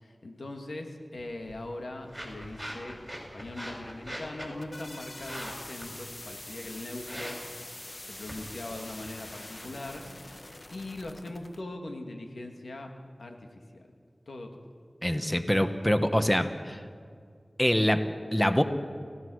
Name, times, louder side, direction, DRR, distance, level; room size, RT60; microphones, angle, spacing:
voice 1, 0.0-3.0 3.3-12.9 13.2-14.0 14.3-14.7, left 2 dB, 90° left, 3 dB, 2.1 m, -41 dB
sound 1, 1.1-11.1, equal, 5° right, 6.3 m, -45 dB
sound 2, 4.4-11.6, left 1 dB, 45° left, 1.4 m, -45 dB
voice 2, 15.0-16.8 17.6-18.6, equal, 10° left, 9 dB, 1.4 m, -25 dB
29.0 x 16.5 x 6.4 m, 2.1 s
wide cardioid pair, 45°, 0 cm